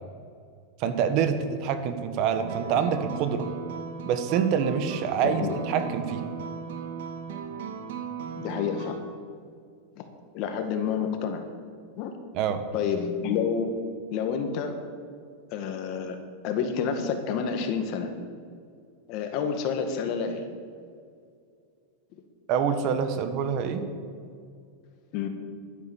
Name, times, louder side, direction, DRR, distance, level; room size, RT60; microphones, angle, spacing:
voice 1, 0.8-3.5 4.0-6.3 12.3-12.6 22.5-23.8, right 7 dB, 50° right, 9 dB, 1.3 m, -26 dB
sound 1, 2.4-9.0, right 6 dB, 75° right, 2.1 m, -37 dB
voice 2, 8.4-9.0 10.3-11.5 12.0-12.1 12.7-13.7 14.1-14.7 15.5-16.2 16.4-18.1 19.1-20.4 25.1-25.3, left 6 dB, 50° left, 6 dB, 1.8 m, -29 dB
12.0 x 9.8 x 7.3 m, 2.2 s
supercardioid pair, 135°, 0 cm